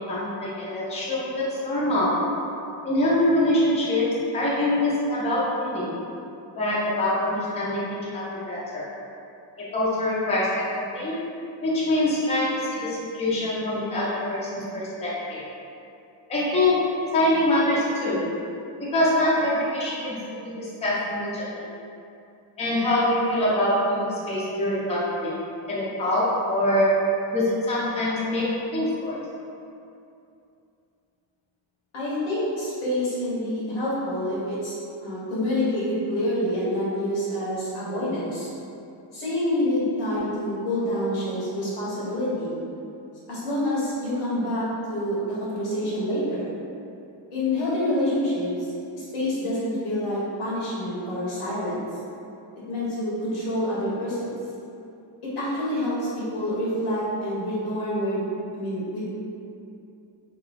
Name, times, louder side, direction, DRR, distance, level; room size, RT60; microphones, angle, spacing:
voice 1, 0.1-2.4 2.8-5.9 6.6-8.8 9.7-11.2 11.6-15.4 16.3-18.3 18.9-21.7 22.6-25.3 25.7-27.1 27.3-29.2, left 1 dB, 15° left, -8 dB, 0.5 m, -24 dB
voice 2, 31.9-34.8 35.0-38.5 39.1-42.5 43.3-46.5 47.3-48.7 48.9-51.8 52.7-54.4 55.2-58.3 58.5-59.1, left 1 dB, 85° left, -8 dB, 1.3 m, -27 dB
3.0 x 2.3 x 2.5 m, 2.7 s
cardioid pair, 130°, 48 cm